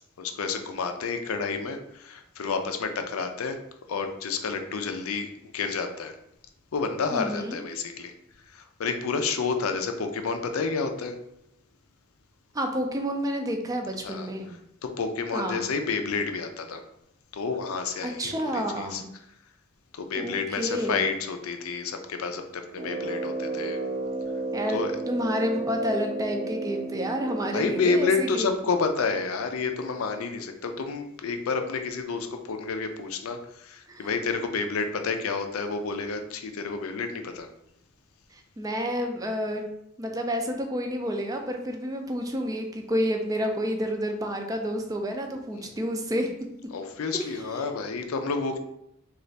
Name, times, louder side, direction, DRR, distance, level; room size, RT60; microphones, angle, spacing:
voice 1, 0.2-3.6 3.9-5.3 5.5-6.1 6.7-8.1 8.5-11.2 14.0-14.6 14.8-16.8 17.3-19.0 19.9-23.8 24.7-24.9 27.5-37.5 45.5-45.7 46.7-48.6, left 4 dB, 75° left, 6 dB, 0.4 m, -30 dB
voice 2, 7.1-7.6 12.5-14.5 15.3-15.7 18.0-19.1 20.2-21.0 24.5-24.8 25.1-28.5 33.9-34.1 38.3-39.6 40.0-46.3 47.1-47.5, equal, 15° right, 4 dB, 0.3 m, -29 dB
Brass instrument, 22.7-28.3, right 2 dB, 45° right, 0.7 m, -32 dB
3.2 x 2.4 x 3.9 m, 0.81 s
head